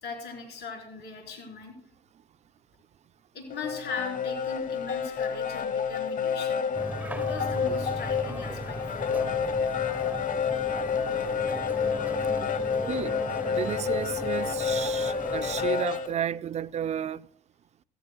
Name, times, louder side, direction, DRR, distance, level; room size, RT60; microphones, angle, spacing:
voice 1, 0.0-1.7 3.3-6.7 7.1-9.3, left 4 dB, 65° left, 4.4 m, -39 dB
sound 1, 3.5-16.1, left 6 dB, 45° left, 0.9 m, -29 dB
sound 2, 6.7-15.7, right 1 dB, 10° right, 1.1 m, -37 dB
voice 2, 13.4-17.2, right 9 dB, 35° right, 0.4 m, -32 dB
16.0 x 15.0 x 2.3 m
hypercardioid pair, 60°, 19 cm